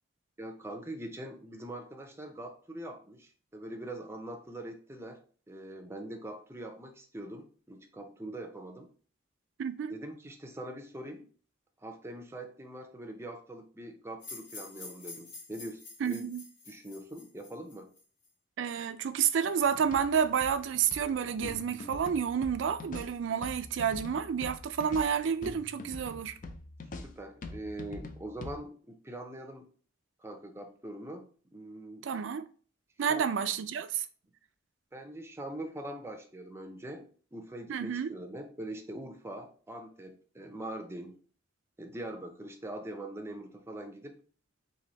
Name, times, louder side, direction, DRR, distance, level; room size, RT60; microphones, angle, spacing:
voice 1, 0.4-5.2 5.5-8.9 9.9-11.3 11.8-15.8 16.1-16.3 16.7-17.9 27.0-29.7 30.2-32.0 33.1-33.3 34.9-37.1 37.3-41.2 41.8-44.2, right 1 dB, 15° right, 0.5 m, -43 dB
voice 2, 9.6-10.0 16.0-16.4 18.6-26.3 32.0-32.5 33.0-34.1 37.7-38.1, right 7 dB, 70° right, 0.4 m, -30 dB
sound 1, 14.2-18.3, left 3 dB, 75° left, 1.4 m, -48 dB
sound 2, 19.6-28.6, left 2 dB, 45° left, 0.5 m, -45 dB
3.1 x 2.7 x 3.9 m
head